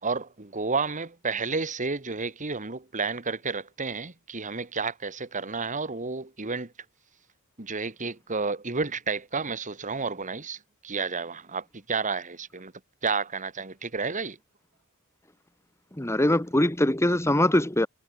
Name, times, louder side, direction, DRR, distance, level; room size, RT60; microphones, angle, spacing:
voice 1, 0.0-6.7 7.6-12.7 13.0-14.4, right 4 dB, 35° right, 1.9 m, -31 dB
voice 2, 16.0-17.9, left 1 dB, 10° left, 1.5 m, -22 dB
head